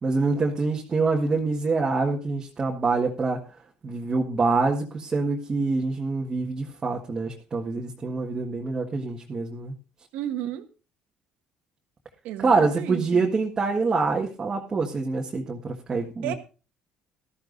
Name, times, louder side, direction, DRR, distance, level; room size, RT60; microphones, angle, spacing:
voice 1, 0.0-3.4 3.8-9.7 12.4-16.3, right 3 dB, 25° right, 0 dB, 1.6 m, -25 dB
voice 2, 10.1-10.7 12.2-13.2 16.2-16.3, right 12 dB, 80° right, 7 dB, 1.7 m, -32 dB
18.0 x 13.0 x 2.6 m, 0.33 s
cardioid pair, 120°, 2 cm